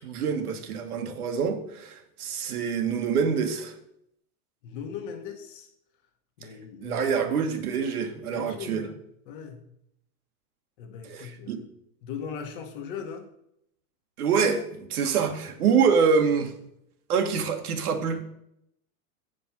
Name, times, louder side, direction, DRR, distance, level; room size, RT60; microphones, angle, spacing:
voice 1, 0.0-3.7 6.4-6.5 6.8-8.9 11.0-11.6 14.2-16.6 17.1-18.2, right 6 dB, 80° right, 1.5 m, -26 dB
voice 2, 4.6-5.7 6.4-7.4 8.3-9.0 9.3-9.6 10.8-11.6 12.0-13.3, left 7 dB, 35° left, 1.2 m, -39 dB
8.2 x 5.3 x 5.8 m
supercardioid pair, 170°, 44 cm